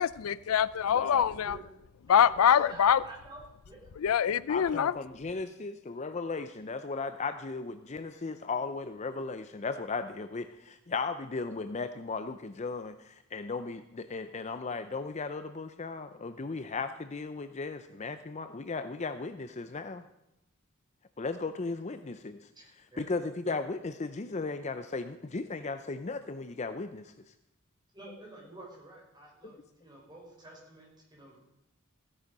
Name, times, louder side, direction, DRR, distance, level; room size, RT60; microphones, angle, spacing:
voice 1, 0.0-1.6 2.1-3.0 4.0-4.9, left 8 dB, 80° left, 18 dB, 0.4 m, -24 dB
voice 2, 0.9-1.2 4.5-20.0 21.2-22.5 23.0-27.1, left 4 dB, 30° left, 10 dB, 0.5 m, -36 dB
voice 3, 2.1-3.9 4.5-4.7 22.5-23.1 27.9-31.4, right 2 dB, 20° right, -2 dB, 4.7 m, -50 dB
15.5 x 9.9 x 5.3 m, 0.85 s
head